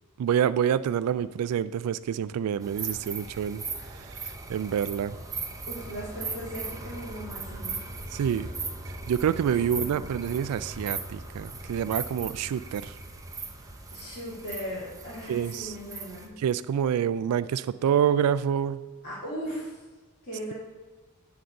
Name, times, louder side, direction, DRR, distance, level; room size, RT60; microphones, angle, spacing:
voice 1, 0.2-3.6 3.9-5.1 8.1-8.5 8.9-12.9 15.3-15.8 16.4-18.8, right 8 dB, 85° right, 16 dB, 0.3 m, -27 dB
sound 1, 2.6-16.3, right 3 dB, 15° right, 0.8 m, -38 dB
voice 2, 5.7-7.9 9.7-10.3 13.9-16.4 19.0-19.8 20.2-20.5, equal, 40° left, -10 dB, 2.5 m, -38 dB
9.3 x 3.9 x 5.6 m, 1.3 s
head